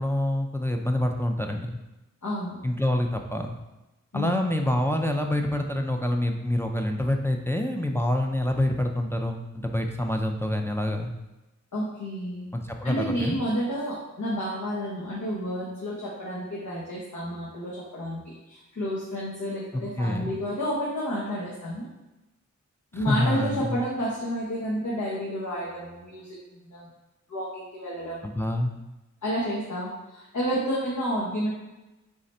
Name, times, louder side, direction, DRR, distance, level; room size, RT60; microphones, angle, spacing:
voice 1, 0.0-1.8 2.6-3.5 4.1-11.1 12.5-13.4 19.7-20.3 22.9-23.8 28.2-28.7, left 1 dB, 10° left, 3 dB, 0.4 m, -26 dB
voice 2, 2.2-2.6 4.1-4.4 11.7-12.5 12.8-21.9 22.9-26.9 27.3-28.2 29.2-31.5, equal, 75° left, -6 dB, 1.0 m, -30 dB
3.8 x 3.3 x 4.2 m, 1.0 s
wide cardioid pair, 50°, 30 cm